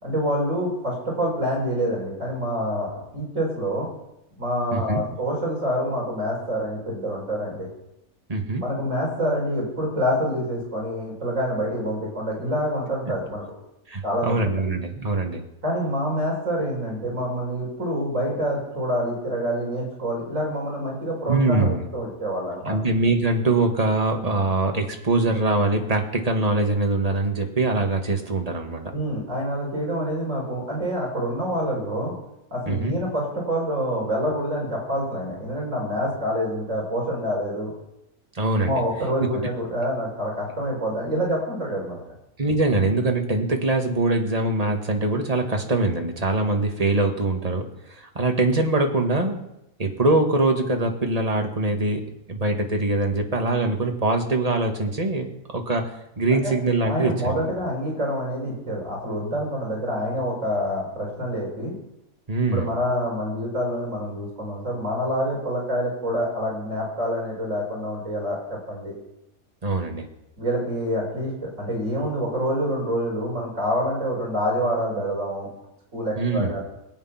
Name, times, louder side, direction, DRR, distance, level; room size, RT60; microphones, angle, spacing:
voice 1, 0.0-3.9 4.4-7.7 8.6-13.4 14.0-14.6 15.6-22.8 28.9-32.1 32.5-37.7 38.6-42.0 56.3-56.5 56.9-61.8 62.5-68.9 70.4-75.5 75.9-76.6, equal, 55° right, -2 dB, 4.7 m, -27 dB
voice 2, 4.7-5.0 8.3-8.6 13.9-15.4 21.3-21.9 22.7-28.9 32.7-33.0 38.3-38.8 39.2-39.5 42.4-49.4 49.8-52.0 52.3-57.5 62.3-62.7 69.6-70.1 76.2-76.6, right 2 dB, 25° right, 3 dB, 1.8 m, -23 dB
22.0 x 8.7 x 5.8 m, 0.86 s
omnidirectional pair, 1.6 m